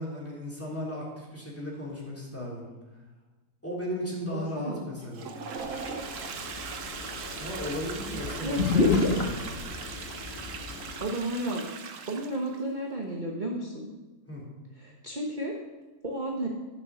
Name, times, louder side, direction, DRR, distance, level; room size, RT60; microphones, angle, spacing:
voice 1, 0.0-2.7 3.6-5.3 7.4-9.6 14.3-14.5, equal, 10° left, -5 dB, 3.3 m, -35 dB
voice 2, 4.3-4.9 8.4-9.1 11.0-11.6 12.1-13.9 14.8-15.5 16.0-16.5, right 1 dB, 30° right, 0 dB, 1.3 m, -33 dB
Toilet flush, 5.0-12.6, right 5 dB, 55° right, 1.1 m, -40 dB
sound 1, 5.6-11.0, left 3 dB, 40° left, 1.6 m, -31 dB
12.5 x 6.9 x 6.5 m, 1.2 s
omnidirectional pair, 1.7 m